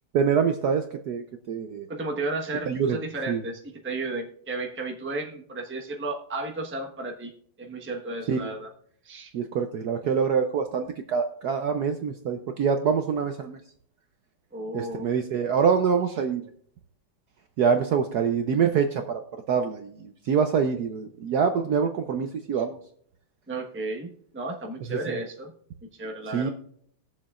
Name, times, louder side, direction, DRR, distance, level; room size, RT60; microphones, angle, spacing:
voice 1, 0.1-1.9 2.7-3.0 3.3-3.4 8.3-8.5 9.3-13.6 14.7-16.4 17.6-19.2 19.5-22.8 24.9-25.2 26.3-26.5, right 6 dB, 65° right, 6 dB, 1.0 m, -25 dB
voice 2, 1.9-7.3 7.6-8.7 9.0-9.3 14.5-15.1 22.5-22.6 23.5-25.5 26.0-26.5, right 2 dB, 10° right, 1 dB, 0.8 m, -33 dB
20.5 x 7.2 x 2.4 m, 0.64 s
omnidirectional pair, 2.2 m